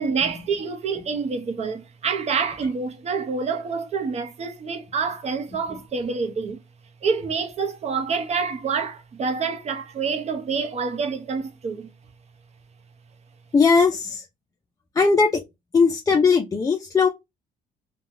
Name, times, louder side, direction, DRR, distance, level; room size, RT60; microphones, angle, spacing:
voice 1, 0.0-6.6 7.0-11.9, right 5 dB, 40° right, 0.7 m, -27 dB
voice 2, 13.5-14.2 15.0-15.4 15.7-17.1, left 5 dB, 20° left, 0.4 m, -19 dB
3.2 x 2.2 x 2.5 m
cardioid pair, 110°, 17 cm